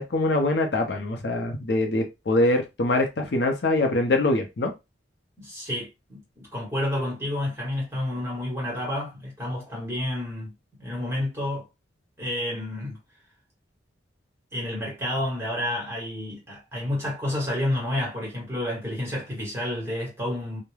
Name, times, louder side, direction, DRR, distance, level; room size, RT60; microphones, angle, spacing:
voice 1, 0.0-4.7, left 2 dB, 60° left, 0.5 m, -24 dB
voice 2, 5.4-10.5 10.8-11.7 12.2-13.0 14.5-20.6, left 1 dB, 15° right, 1.1 m, -30 dB
2.3 x 2.0 x 3.1 m
head